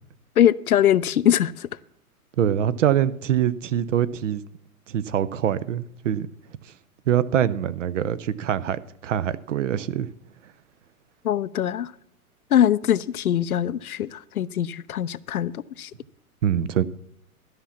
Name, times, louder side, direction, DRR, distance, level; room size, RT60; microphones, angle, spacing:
voice 1, 0.4-1.7 11.2-11.9 12.5-15.9, left 10 dB, 70° left, 0.6 m, -22 dB
voice 2, 2.4-4.4 4.9-6.3 7.1-10.1 16.4-16.8, right 10 dB, 55° right, 0.7 m, -24 dB
12.5 x 6.0 x 7.1 m
figure-of-eight pair, 110°, 45 cm